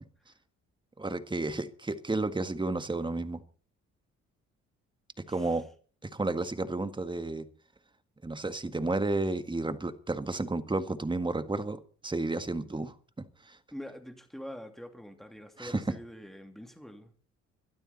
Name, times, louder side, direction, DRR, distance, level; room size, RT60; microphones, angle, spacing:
voice 1, 1.0-3.4 5.3-5.6 6.1-7.5 8.2-12.9 13.4-13.6 15.6-15.8, right 2 dB, 15° right, 1.8 m, -32 dB
voice 2, 5.3-5.6 13.7-17.1, equal, ahead, 2.8 m, -45 dB
23.0 x 12.5 x 4.3 m
cardioid pair, 90°, 30 cm